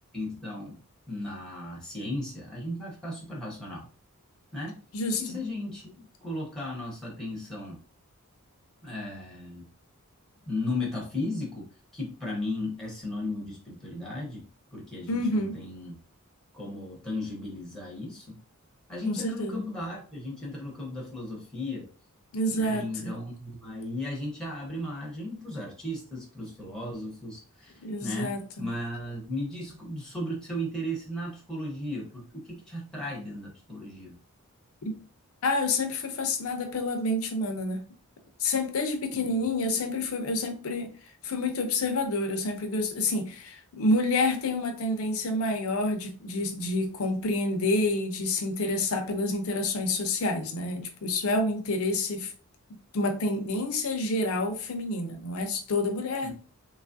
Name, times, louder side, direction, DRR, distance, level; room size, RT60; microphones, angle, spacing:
voice 1, 0.1-0.8 1.1-3.9 4.5-4.8 5.2-7.8 8.8-9.7 10.5-11.7 11.9-14.5 14.7-15.9 16.5-18.4 18.9-21.9 22.5-34.2 39.1-39.4 56.2-56.3, left 1 dB, 5° left, 0.8 m, -36 dB
voice 2, 4.9-5.4 15.1-15.6 19.0-19.6 22.3-23.1 27.8-28.7 34.8-34.9 35.4-37.8 38.4-40.9 41.2-52.3 52.9-56.3, left 2 dB, 70° left, 0.6 m, -28 dB
3.0 x 2.3 x 2.5 m
head